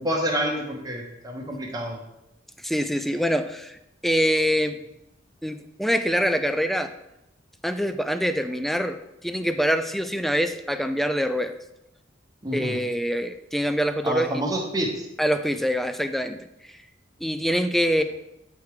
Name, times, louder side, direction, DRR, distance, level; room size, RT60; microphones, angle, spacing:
voice 1, 0.0-2.0 12.4-12.8 14.0-15.1, right 1 dB, 20° right, 0 dB, 1.1 m, -28 dB
voice 2, 2.6-3.8 4.0-4.8 5.4-6.9 7.6-11.5 12.5-14.3 15.2-16.8 17.2-18.0, equal, ahead, 9 dB, 0.3 m, -25 dB
8.2 x 3.5 x 4.8 m, 0.88 s
head